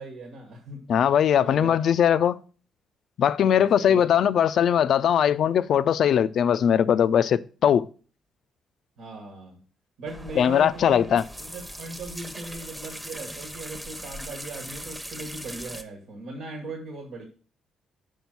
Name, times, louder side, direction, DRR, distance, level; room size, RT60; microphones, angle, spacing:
voice 1, 0.0-0.8 1.4-1.7 3.4-4.0 9.0-9.6 10.0-17.3, right 3 dB, 80° right, 1.4 m, -39 dB
voice 2, 0.9-2.4 3.2-7.8 10.4-11.2, left 9 dB, 65° left, 0.4 m, -20 dB
sound 1, 10.1-15.8, equal, 5° right, 0.8 m, -40 dB
5.5 x 5.1 x 5.8 m
cardioid pair, 90°, 0 cm